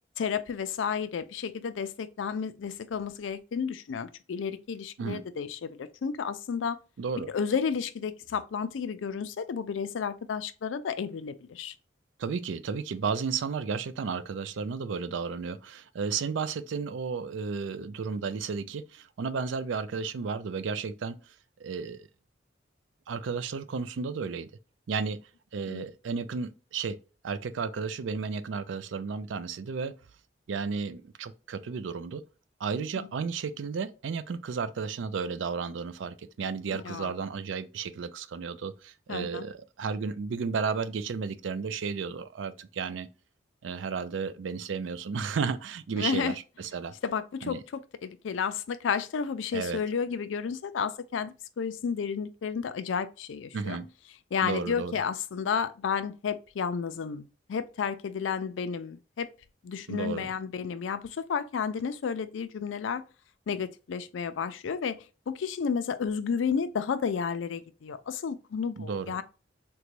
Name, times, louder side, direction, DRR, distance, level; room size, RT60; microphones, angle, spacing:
voice 1, 0.2-6.8 7.3-11.7 25.7-25.9 33.0-33.1 36.7-37.1 39.1-39.5 46.0-46.4 47.0-47.6 48.0-53.8 54.3-59.3 59.6-63.0 63.5-69.2, left 6 dB, 85° left, 0.4 m, -32 dB
voice 2, 7.0-7.3 12.2-21.3 21.6-22.1 23.1-24.5 24.9-27.0 27.2-29.9 30.5-32.2 32.6-43.1 43.6-46.9 47.4-47.6 49.5-49.8 53.5-53.9 54.4-54.9 59.9-60.3 68.8-69.1, right 5 dB, 80° right, 0.4 m, -33 dB
3.8 x 2.2 x 3.0 m
head